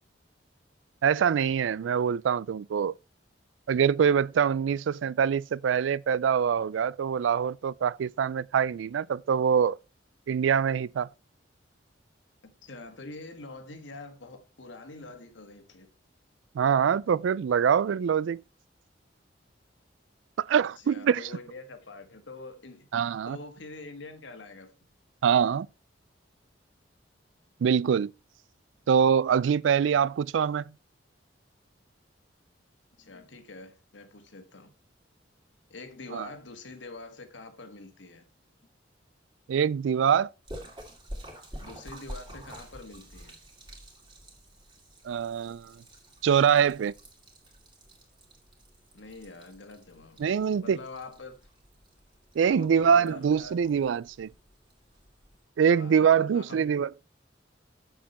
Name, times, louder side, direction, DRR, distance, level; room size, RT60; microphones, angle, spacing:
voice 1, 1.0-2.9 3.7-9.8 10.3-11.1 16.6-18.4 20.5-21.2 22.9-23.4 25.2-25.7 27.6-28.1 28.9-30.6 36.1-36.3 39.5-40.3 45.0-45.7 46.2-46.9 50.2-50.8 52.4-54.3 55.6-56.9, right 7 dB, 90° right, 0.3 m, -24 dB
voice 2, 12.4-15.9 20.8-22.9 23.3-24.7 33.0-34.7 35.7-38.2 41.6-43.4 48.9-50.2 50.6-51.3 52.4-53.6 55.7-56.7, left 3 dB, 80° left, 1.6 m, -45 dB
Splash splatter, 40.4-55.4, equal, 25° right, 2.4 m, -48 dB
7.4 x 7.4 x 4.2 m
head